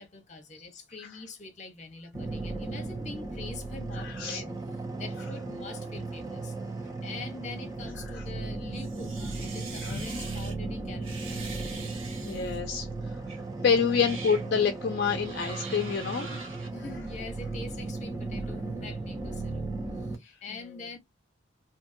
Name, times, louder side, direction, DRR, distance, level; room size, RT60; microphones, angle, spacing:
voice 1, 0.0-4.6 5.0-6.5 7.0-11.5 16.7-19.7 20.1-21.0, left 3 dB, 35° left, 0.8 m, -44 dB
sound 1, 2.1-20.2, right 3 dB, 20° right, 0.4 m, -36 dB
voice 2, 4.0-4.4 8.1-8.2 9.8-10.0 12.3-13.2 13.6-16.4 20.2-20.3, left 6 dB, 55° left, 0.4 m, -28 dB
sound 2, 8.8-10.5 11.0-12.6 13.3-13.4 13.9-14.5 15.2-16.7, right 4 dB, 85° right, 1.5 m, -43 dB
2.7 x 2.6 x 2.5 m
head